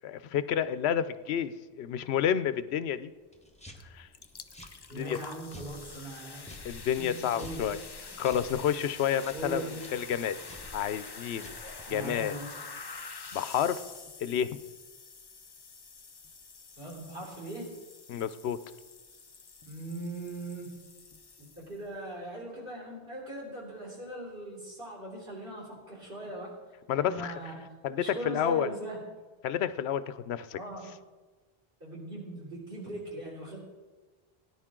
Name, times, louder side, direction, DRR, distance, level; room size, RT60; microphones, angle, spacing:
voice 1, 0.0-1.5 1.8-3.1 3.9-4.1 4.9-5.2 6.6-7.8 8.2-10.4 10.7-11.5 11.9-12.4 13.3-13.8 14.2-14.6 18.1-18.6 26.9-27.4 27.8-28.7 29.4-30.6, left 9 dB, 85° left, 14 dB, 0.9 m, -30 dB
sound 1, 3.3-12.2, left 1 dB, 5° left, 1.1 m, -51 dB
sound 2, 3.8-3.9 4.1-21.9, left 4 dB, 30° left, 0.5 m, -47 dB
voice 2, 4.9-6.5 7.0-7.6 9.3-9.8 11.9-12.7 16.8-17.7 19.6-20.7 21.4-26.5 26.9-27.6 28.0-29.0 30.5-30.9 31.8-33.6, right 1 dB, 60° right, -2 dB, 3.5 m, -40 dB
17.5 x 9.9 x 3.7 m, 1.3 s
omnidirectional pair, 1.1 m